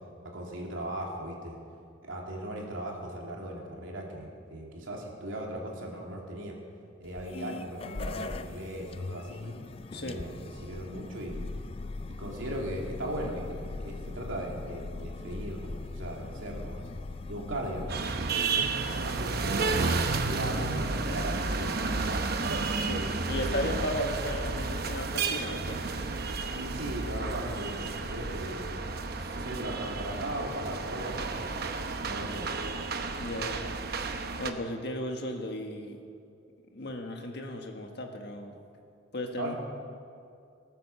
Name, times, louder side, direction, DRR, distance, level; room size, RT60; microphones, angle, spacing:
voice 1, 0.3-1.6 2.0-6.5 7.0-9.5 9.9-11.4 12.1-16.8 17.3-18.0 18.9-22.2 26.5-28.7 29.0-31.5 32.1-32.5 39.4-39.6, right 1 dB, 80° right, -1 dB, 2.9 m, -38 dB
sound 1, 7.0-17.9, left 3 dB, 30° left, 0.4 m, -40 dB
sound 2, 17.9-34.5, right 3 dB, 50° right, 0.9 m, -32 dB
voice 2, 18.3-18.7 22.8-25.8 33.2-33.7 34.1-36.0 36.7-38.6 39.1-39.5, left 1 dB, 55° left, 3 dB, 1.6 m, -35 dB
19.0 x 9.2 x 7.0 m, 2.4 s
head